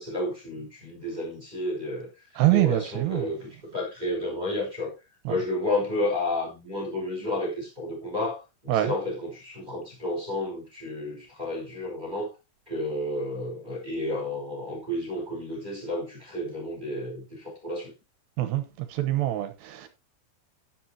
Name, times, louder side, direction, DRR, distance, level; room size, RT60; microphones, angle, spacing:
voice 1, 0.0-2.1 2.5-4.9 5.3-12.3 12.7-17.9, left 1 dB, 10° right, 4.8 m, -31 dB
voice 2, 2.4-3.3 5.3-5.4 8.7-8.9 18.4-18.6 18.9-19.9, right 15 dB, 75° right, 2.8 m, -24 dB
12.5 x 10.5 x 2.9 m
omnidirectional pair, 5.6 m